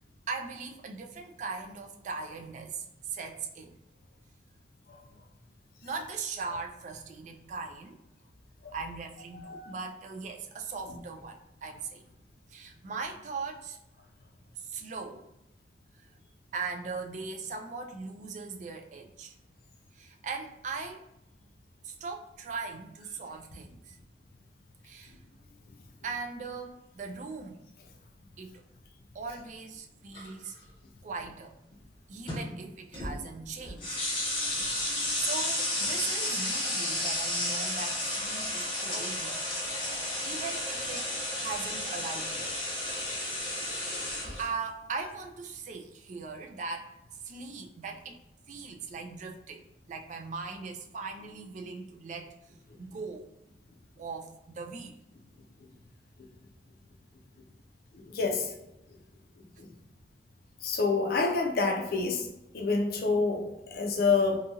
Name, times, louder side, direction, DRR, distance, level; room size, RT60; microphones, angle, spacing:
voice 1, 0.3-3.7 5.8-8.0 8.7-12.0 12.5-13.8 14.6-15.3 16.0-16.1 16.5-19.4 19.9-21.0 21.8-24.0 24.8-25.2 26.0-27.6 28.4-28.6 29.1-30.6 31.0-31.6 32.1-34.0 34.4-34.8 35.2-39.5 39.8-41.1 41.4-42.6 43.0-43.2 44.4-48.2 48.5-52.3 52.8-53.3 54.0-55.0, right 4 dB, 40° right, 3 dB, 0.3 m, -39 dB
voice 2, 9.3-9.7 35.0-35.1 57.9-58.5 59.6-59.7 60.6-62.3 62.5-64.4, left 4 dB, 55° left, 1 dB, 0.4 m, -28 dB
sound 1, 30.1-30.5 32.3-32.4 32.9-33.2 33.6-44.5, left 1 dB, 30° left, 0.9 m, -32 dB
2.7 x 2.4 x 2.8 m, 0.90 s
head